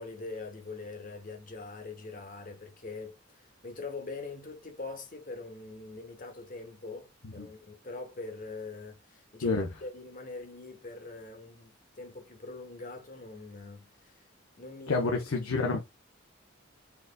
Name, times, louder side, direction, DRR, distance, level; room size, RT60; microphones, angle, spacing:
voice 1, 0.0-14.2 14.6-15.1 15.6-15.7, left 3 dB, 40° left, 1.1 m, -43 dB
voice 2, 14.9-15.8, left 3 dB, 90° left, 0.8 m, -29 dB
4.4 x 3.9 x 2.2 m
head